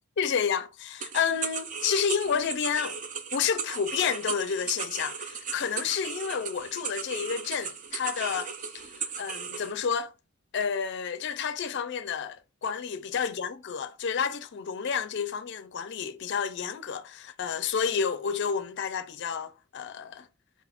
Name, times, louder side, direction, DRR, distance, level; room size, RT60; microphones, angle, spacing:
voice 1, 0.2-3.0 3.3-10.1 10.5-20.3, left 7 dB, 55° left, 0.4 m, -30 dB
sound 1, 1.0-9.7, right 6 dB, 35° right, 0.4 m, -36 dB
4.2 x 2.4 x 3.4 m
head